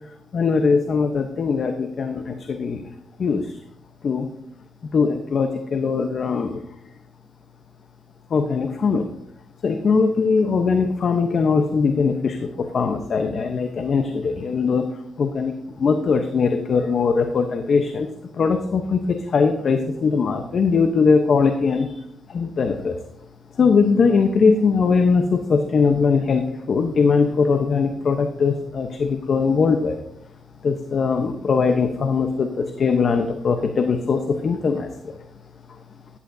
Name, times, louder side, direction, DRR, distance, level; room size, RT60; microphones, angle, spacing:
voice 1, 0.3-2.8 3.2-3.6 4.0-4.3 4.9-6.6 8.3-9.1 9.6-14.8 15.2-15.5 15.8-18.1 18.3-22.0 22.3-23.0 23.5-30.0 30.6-35.2 35.7-35.8, left 5 dB, 55° left, 6 dB, 1.0 m, -20 dB
14.0 x 11.0 x 2.8 m, 0.75 s
cardioid pair, 75°, 0 cm